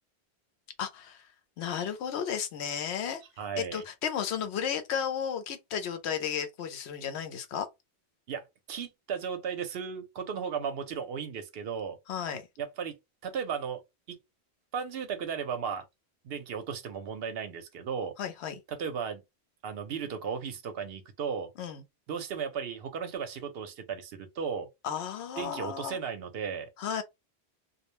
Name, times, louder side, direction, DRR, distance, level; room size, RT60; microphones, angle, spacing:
voice 1, 0.8-1.3 1.6-3.2 3.6-7.7 12.1-12.5 18.2-18.6 21.6-21.8 24.8-26.0 26.8-27.0, left 8 dB, 80° left, 0.9 m, -33 dB
voice 2, 3.4-3.8 8.3-12.0 12.6-12.9 13.2-13.8 14.1-14.2 14.7-15.8 16.2-18.1 18.7-19.2 19.6-21.5 22.1-24.7 25.4-26.7, right 7 dB, 70° right, 0.8 m, -35 dB
2.3 x 2.1 x 3.0 m
omnidirectional pair, 1.1 m